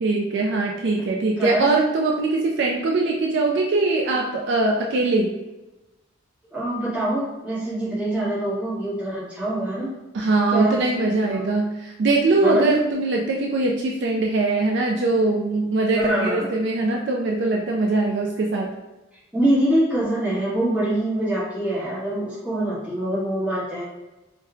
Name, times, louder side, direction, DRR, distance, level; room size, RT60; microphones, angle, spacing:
voice 1, 0.0-5.3 10.1-18.7, right 2 dB, 55° right, -1 dB, 0.3 m, -22 dB
voice 2, 6.5-9.9 10.5-11.4 12.4-12.7 15.9-16.5 19.3-23.8, right 1 dB, 5° right, -11 dB, 1.3 m, -24 dB
4.2 x 2.2 x 2.3 m, 1.1 s
head